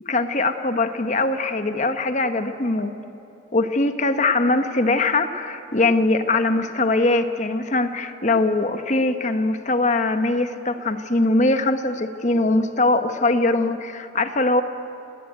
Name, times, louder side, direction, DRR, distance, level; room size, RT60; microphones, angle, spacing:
voice 1, 0.0-2.9 3.5-14.6, left 2 dB, 35° left, 8 dB, 1.1 m, -21 dB
28.0 x 19.5 x 9.2 m, 2.9 s
head